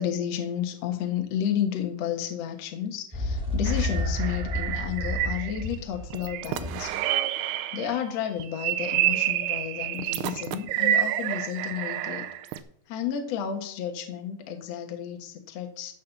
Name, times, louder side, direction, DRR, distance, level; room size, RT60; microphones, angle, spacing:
voice 1, 0.0-7.0 7.7-12.3 12.9-15.9, left 9 dB, 85° left, 5 dB, 1.4 m, -32 dB
sound 1, 3.1-6.9, left 1 dB, 5° right, 1.0 m, -30 dB
sound 2, 3.7-5.8 6.1-8.0 8.4-12.6, right 12 dB, 85° right, 2.4 m, -29 dB
13.5 x 5.7 x 7.1 m, 0.63 s
omnidirectional pair, 5.4 m